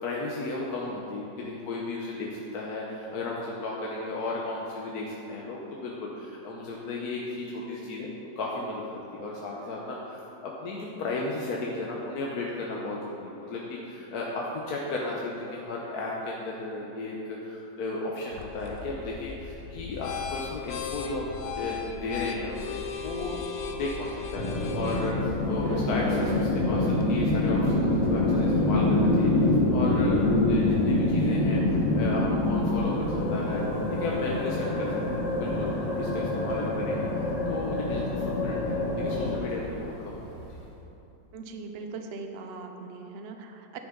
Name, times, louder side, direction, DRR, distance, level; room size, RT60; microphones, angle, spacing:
voice 1, 0.0-8.1 8.4-8.8 9.1-23.4 23.6-33.6 33.9-37.1 37.5-40.3, left 2 dB, 65° left, -3 dB, 1.4 m, -34 dB
sound 1, 18.3-27.1, left 6 dB, 80° left, 1.5 m, -38 dB
sound 2, 24.4-39.4, left 2 dB, 30° left, 0.8 m, -25 dB
Thunder / Rain, 24.5-40.8, equal, 80° right, 3.6 m, -44 dB
voice 2, 41.3-43.8, right 4 dB, 55° right, 5 dB, 0.7 m, -40 dB
10.5 x 10.0 x 3.9 m, 2.9 s
omnidirectional pair, 1.9 m